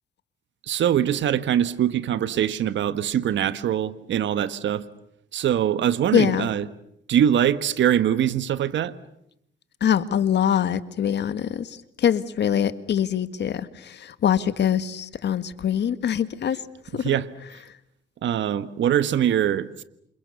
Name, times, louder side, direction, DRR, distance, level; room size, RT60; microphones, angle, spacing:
voice 1, 0.6-4.9 5.3-6.7 7.1-8.9 17.0-17.3 18.2-19.8, right 10 dB, 70° right, 1.4 m, -23 dB
voice 2, 6.1-6.5 9.8-16.6 16.9-17.2, left 9 dB, 60° left, 1.8 m, -23 dB
28.5 x 28.0 x 7.0 m
cardioid pair, 90°, 20 cm